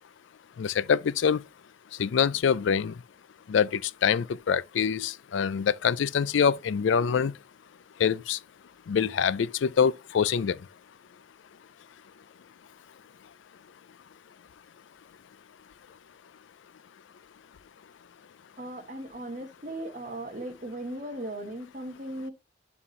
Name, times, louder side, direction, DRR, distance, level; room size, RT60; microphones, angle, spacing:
voice 1, 0.6-1.4 2.0-2.9 3.5-7.3 8.0-8.4 8.9-10.6, left 7 dB, 75° left, 0.4 m, -25 dB
voice 2, 18.6-22.3, right 1 dB, 40° right, 1.3 m, -37 dB
11.0 x 4.3 x 3.1 m
head